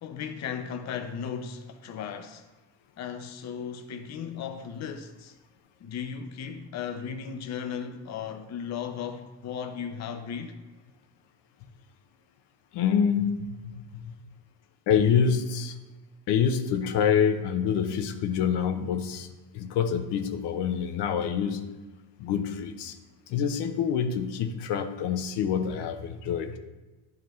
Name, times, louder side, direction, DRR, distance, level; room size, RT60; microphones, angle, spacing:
voice 1, 0.0-2.5 3.0-5.3 5.8-10.6, left 7 dB, 40° left, 0.7 m, -36 dB
voice 2, 12.7-14.1 14.9-15.7 16.3-19.3 19.5-21.6 22.2-23.0 23.3-26.6, left 7 dB, 75° left, 0.9 m, -26 dB
10.5 x 4.9 x 3.1 m
cardioid pair, 120°, 41 cm